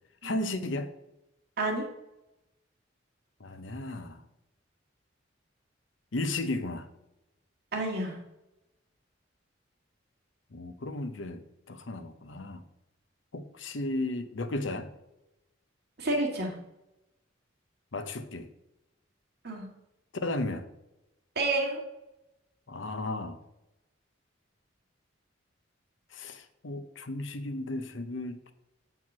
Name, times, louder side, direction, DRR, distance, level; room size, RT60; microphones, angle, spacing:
voice 1, 0.2-0.9 3.4-4.2 6.1-6.9 10.5-11.4 11.7-12.6 13.3-14.9 17.9-18.5 20.1-20.6 22.7-23.4 26.1-28.5, left 2 dB, 75° left, 10 dB, 0.8 m, -34 dB
voice 2, 1.6-1.9 7.7-8.2 16.0-16.5 19.4-19.7 21.4-21.8, right 2 dB, 60° right, 1 dB, 2.0 m, -29 dB
7.9 x 4.6 x 6.0 m, 0.90 s
head